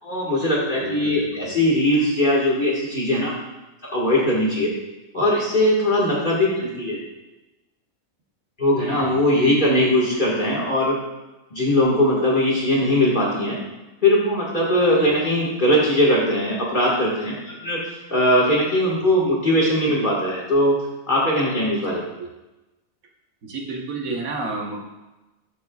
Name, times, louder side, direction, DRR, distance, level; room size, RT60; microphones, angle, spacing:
voice 1, 0.0-3.3 3.8-4.7 5.1-7.0 8.6-11.0 11.5-13.6 14.0-17.8 18.1-20.8 21.1-22.0, left 1 dB, 35° left, -5 dB, 1.9 m, -20 dB
voice 2, 0.8-1.5 8.7-9.2 15.0-15.1 21.8-22.3 23.4-24.8, right 3 dB, 85° right, 0 dB, 1.6 m, -32 dB
12.0 x 6.5 x 2.3 m, 1.0 s
omnidirectional pair, 1.4 m